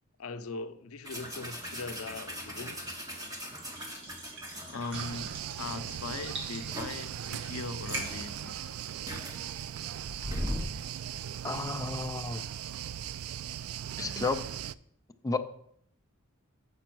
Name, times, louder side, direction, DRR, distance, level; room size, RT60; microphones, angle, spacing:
voice 1, 0.2-2.9 3.1-3.2 4.7-8.7, left 4 dB, 90° left, 10 dB, 0.6 m, -40 dB
sound 1, 1.0-5.1 5.6-5.8 6.2-7.1 7.6-7.7 7.9-10.8, equal, 15° right, 1.3 m, -39 dB
sound 2, 1.1-9.6, right 1 dB, 60° right, 2.4 m, -46 dB
sound 3, 4.9-14.8, right 10 dB, 85° right, 0.3 m, -39 dB
voice 2, 11.4-12.4 14.0-14.4 15.2-15.4, left 3 dB, 15° left, 6 dB, 0.4 m, -32 dB
7.0 x 5.4 x 6.0 m, 0.69 s
head